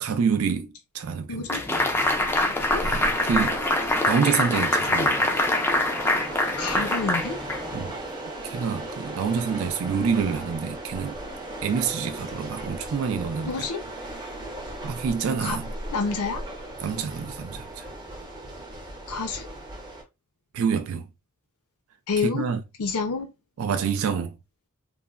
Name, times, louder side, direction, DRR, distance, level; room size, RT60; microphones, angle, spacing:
voice 1, 0.0-1.5 2.8-3.6 4.1-5.3 7.7-7.9 8.4-11.2 11.6-13.7 14.8-15.7 16.8-17.8 20.5-21.1 22.2-22.6 23.6-24.4, right 6 dB, 65° right, 0.3 m, -27 dB
voice 2, 1.3-1.6 2.4-2.8 6.6-7.4 13.4-13.8 15.4-15.6 15.9-16.4 19.1-19.5 22.1-22.5 22.8-23.3, left 4 dB, 90° left, 0.5 m, -28 dB
sound 1, 1.5-8.0, left 1 dB, 10° left, 0.3 m, -24 dB
sound 2, 2.0-20.0, right 1 dB, 20° right, 0.7 m, -36 dB
3.1 x 2.0 x 2.3 m
head